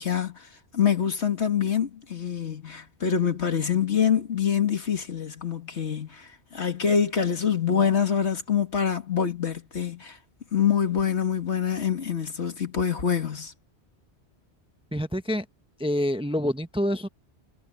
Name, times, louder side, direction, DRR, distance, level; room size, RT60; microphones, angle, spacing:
voice 1, 0.0-10.2 10.5-13.5, left 7 dB, 80° left, 2.2 m, -25 dB
voice 2, 14.9-15.4 15.8-17.1, equal, 5° right, 0.6 m, -26 dB
omnidirectional pair, 1.1 m